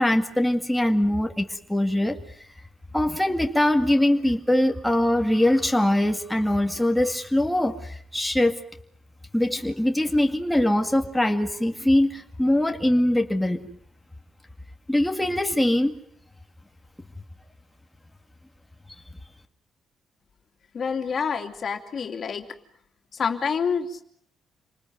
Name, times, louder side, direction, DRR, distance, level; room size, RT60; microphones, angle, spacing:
voice 1, 0.0-2.2 2.9-8.6 9.3-13.7 14.9-16.0, left 1 dB, 5° left, 4 dB, 2.1 m, -22 dB
voice 2, 20.7-22.4 23.1-24.1, left 6 dB, 50° left, 6 dB, 2.8 m, -27 dB
28.0 x 20.0 x 9.2 m, 0.69 s
cardioid pair, 90°, 0 cm